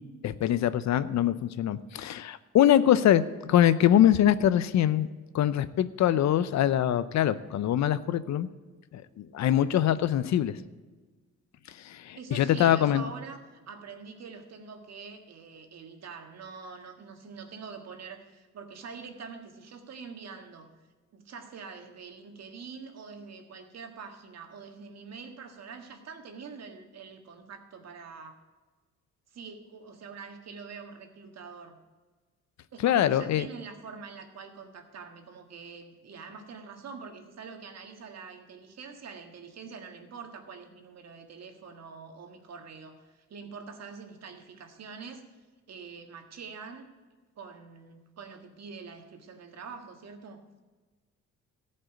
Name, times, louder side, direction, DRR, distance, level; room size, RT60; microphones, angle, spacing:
voice 1, 0.2-3.2 3.5-5.1 5.3-8.5 8.9-10.6 11.8-13.0 32.8-33.5, left 11 dB, 65° left, 15 dB, 0.7 m, -23 dB
voice 2, 12.1-20.7 21.1-28.4 29.3-31.8 32.7-45.2 45.7-46.9 47.3-50.4, right 5 dB, 60° right, 5 dB, 1.7 m, -45 dB
14.5 x 5.5 x 8.9 m, 1.3 s
cardioid pair, 90°, 30 cm